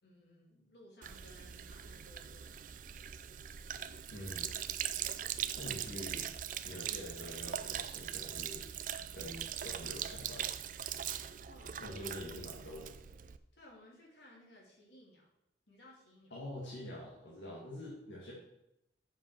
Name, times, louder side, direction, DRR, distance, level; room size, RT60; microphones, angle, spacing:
voice 1, 0.0-3.1 11.5-12.0 13.5-15.3 15.7-16.4, left 1 dB, 70° left, -3 dB, 2.8 m, -59 dB
Sink (filling or washing), 1.0-13.4, right 10 dB, 45° right, 0.4 m, -41 dB
voice 2, 4.1-4.5 5.6-6.3 6.6-8.7 9.1-10.5 11.8-12.9 16.3-18.3, left 1 dB, 85° left, -5 dB, 2.0 m, -46 dB
7.1 x 5.5 x 6.6 m, 0.84 s
head